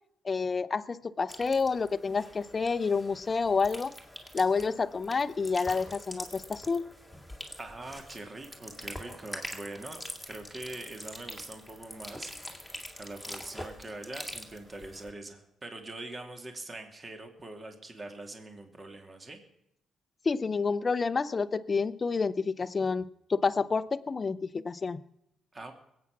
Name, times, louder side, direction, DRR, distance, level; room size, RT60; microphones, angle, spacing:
voice 1, 0.2-3.9 4.3-6.8 20.2-25.0, left 4 dB, 35° left, 15 dB, 0.7 m, -29 dB
sound 1, 1.3-15.1, left 1 dB, ahead, 2.4 m, -44 dB
voice 2, 7.6-12.3 12.6-19.4 25.5-25.7, right 2 dB, 30° right, 5 dB, 2.4 m, -43 dB
21.0 x 8.6 x 6.0 m, 0.80 s
cardioid pair, 90°, 0 cm